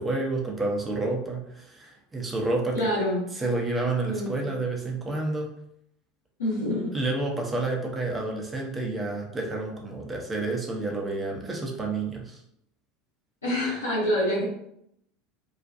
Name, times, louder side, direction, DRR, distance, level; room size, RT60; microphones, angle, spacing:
voice 1, 0.0-2.7 3.3-5.5 6.9-12.4, right 2 dB, 15° right, 0 dB, 0.7 m, -29 dB
voice 2, 2.7-3.2 4.1-4.4 6.4-6.9 13.4-14.4, left 1 dB, 80° left, -9 dB, 0.9 m, -26 dB
2.4 x 2.2 x 2.6 m, 0.73 s
figure-of-eight pair, 75°, 0 cm